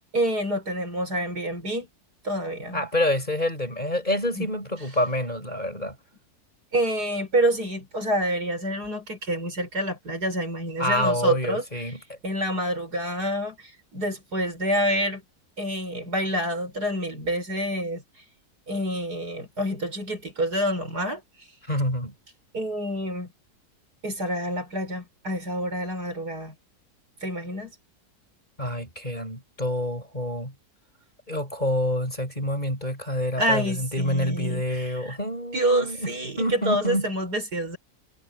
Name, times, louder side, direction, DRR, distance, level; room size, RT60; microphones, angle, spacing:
voice 1, 0.1-1.9 2.2-2.8 4.3-4.5 6.7-11.9 12.2-15.2 15.6-18.0 18.7-21.2 22.5-23.3 24.0-26.5 27.2-27.8 33.4-35.2 35.5-37.8, equal, 85° right, 6.9 m, -27 dB
voice 2, 2.7-6.0 10.8-12.0 21.7-22.1 28.6-30.5 31.3-37.1, left 1 dB, 25° left, 6.7 m, -27 dB
omnidirectional pair, 1.7 m